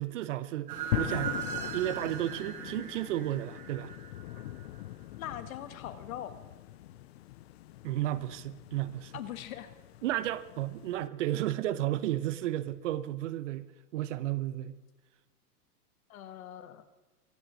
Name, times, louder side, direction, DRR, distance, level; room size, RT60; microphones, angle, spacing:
voice 1, 0.0-1.4 1.7-3.9 7.8-9.1 10.0-14.8, right 14 dB, 50° right, 0.8 m, -33 dB
sound 1, 0.7-4.6, right 8 dB, 70° right, 2.8 m, -39 dB
sound 2, 0.9-11.1, left 14 dB, 45° left, 0.5 m, -41 dB
voice 2, 5.2-6.4 9.1-9.7 16.1-16.8, left 11 dB, 60° left, 1.6 m, -41 dB
23.5 x 7.9 x 6.2 m
hypercardioid pair, 140°, 47 cm